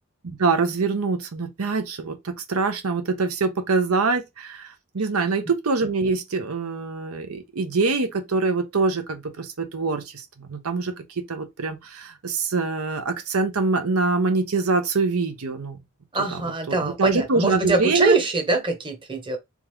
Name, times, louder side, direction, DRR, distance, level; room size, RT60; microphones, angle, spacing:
voice 1, 0.2-10.9 11.3-15.8 16.3-18.2, right 4 dB, 85° right, 0.8 m, -24 dB
voice 2, 16.1-19.4, right 3 dB, 25° right, 0.9 m, -23 dB
3.5 x 3.5 x 3.1 m
head